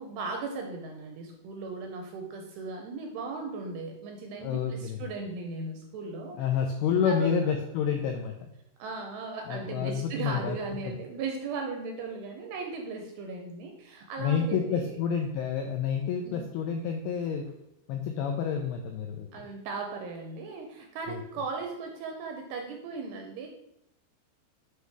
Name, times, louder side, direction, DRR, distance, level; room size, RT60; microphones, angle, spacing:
voice 1, 0.0-6.4 7.1-7.5 8.8-15.0 16.2-16.5 19.3-23.5, right 4 dB, 85° right, 2 dB, 2.4 m, -37 dB
voice 2, 4.4-5.0 6.4-8.5 9.5-10.6 14.2-17.5 17.9-19.3 21.1-21.2, left 7 dB, 85° left, 3 dB, 2.3 m, -29 dB
8.1 x 2.7 x 4.6 m, 0.82 s
omnidirectional pair, 5.1 m